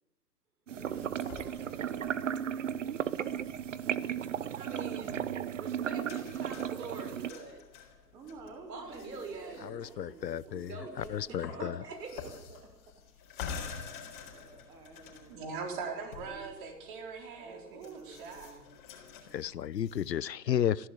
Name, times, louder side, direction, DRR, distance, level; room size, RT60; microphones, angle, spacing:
Slinky Foley, 0.7-20.1, left 6 dB, 30° left, 4.0 m, -49 dB
voice 1, 0.7-2.2 8.1-11.7 12.1-12.9 13.2-13.5 14.2-15.8 16.2-16.5 17.4-18.7, right 3 dB, 5° right, 3 dB, 1.0 m, -51 dB
sound 1, 0.7-7.3, right 9 dB, 50° right, 0.9 m, -35 dB
voice 2, 4.5-7.6 8.7-9.9 10.5-11.1 11.4-12.3 20.4-20.5, right 3 dB, 70° right, 6 dB, 5.9 m, -44 dB
voice 3, 9.6-10.7 11.1-11.7 19.3-20.9, left 10 dB, 75° left, 21 dB, 0.9 m, -32 dB
voice 4, 15.3-18.6, right 5 dB, 30° right, 3 dB, 4.2 m, -41 dB
20.5 x 15.5 x 8.4 m, 0.98 s
hypercardioid pair, 165°, 50 cm